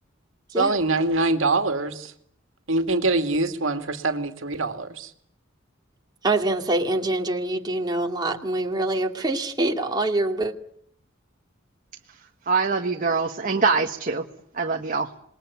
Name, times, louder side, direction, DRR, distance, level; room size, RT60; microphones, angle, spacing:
voice 1, 0.6-2.1 2.7-5.1, right 2 dB, 70° right, 7 dB, 2.4 m, -24 dB
voice 2, 6.2-10.5, right 2 dB, 20° right, 2 dB, 2.5 m, -25 dB
voice 3, 12.5-14.2 14.5-15.1, right 4 dB, 45° right, 3 dB, 1.5 m, -23 dB
27.0 x 21.0 x 9.4 m, 0.68 s
head